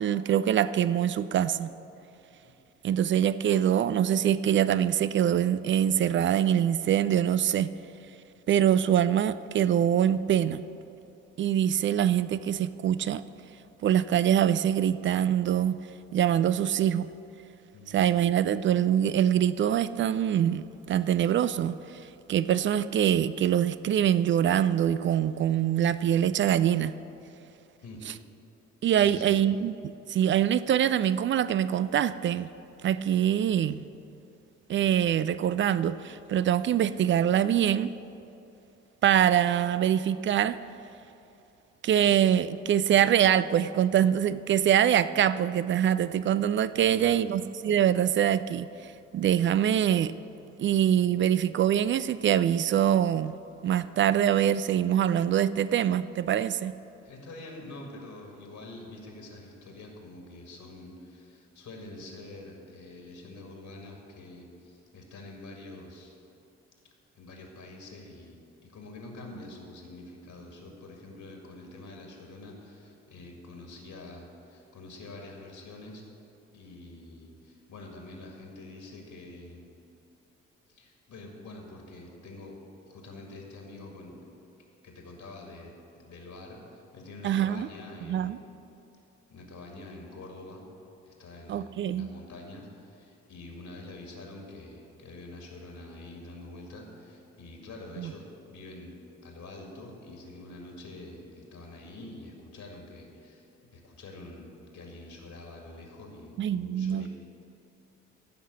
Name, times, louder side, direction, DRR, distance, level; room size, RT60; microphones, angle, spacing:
voice 1, 0.0-1.7 2.8-7.7 8.5-10.6 11.4-13.2 13.8-15.8 16.1-17.1 17.9-21.8 22.3-27.0 28.8-32.5 32.8-33.8 34.7-37.9 39.0-40.6 41.8-50.1 50.6-53.4 53.6-56.7 87.2-87.7 88.1-88.4 91.5-92.1 98.0-98.1 106.4-107.1, right 10 dB, 35° right, 15 dB, 0.4 m, -24 dB
voice 2, 29.0-29.4 46.7-47.3 57.0-66.2 67.2-76.1 76.5-79.7 80.7-84.2 84.8-85.7 86.0-88.5 89.3-90.6 91.0-99.0 99.2-103.5 103.7-107.1, left 2 dB, 50° left, 1 dB, 2.1 m, -46 dB
14.5 x 5.6 x 6.1 m, 2.8 s
figure-of-eight pair, 40°, 37 cm